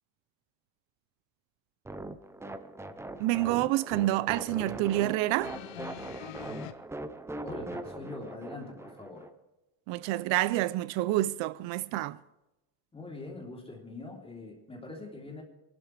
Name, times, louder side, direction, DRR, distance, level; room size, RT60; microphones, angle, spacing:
sound 1, 1.8-9.3, right 2 dB, 5° right, 0.6 m, -41 dB
voice 1, 3.2-5.6 9.9-12.2, right 16 dB, 75° right, 0.7 m, -28 dB
sound 2, 5.4-6.7 7.7-7.8, left 13 dB, 85° left, 1.2 m, -44 dB
voice 2, 7.4-9.3 12.9-15.4, left 2 dB, 10° left, 3.4 m, -43 dB
26.0 x 12.5 x 3.3 m
cardioid pair, 150°, 46 cm